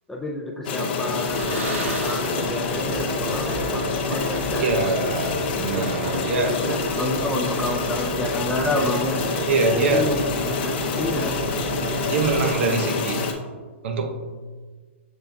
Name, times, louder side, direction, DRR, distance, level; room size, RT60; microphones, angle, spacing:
voice 1, 0.1-5.1 6.3-9.2 9.7-11.4, left 1 dB, 5° left, 0 dB, 0.3 m, -30 dB
sound 1, 0.6-13.3, left 4 dB, 50° left, 0.6 m, -27 dB
sound 2, 1.3-12.5, right 2 dB, 40° right, 0.9 m, -34 dB
sound 3, 1.3-2.9 3.2-3.3 4.1-4.6 5.0-5.1 5.8-7.8, right 2 dB, 90° right, 0.9 m, -34 dB
voice 2, 4.6-6.6 9.5-10.1 12.1-13.2 13.8-14.3, right 3 dB, 60° right, 5 dB, 0.6 m, -24 dB
7.0 x 3.3 x 2.2 m, 1.4 s
hypercardioid pair, 140°, 7 cm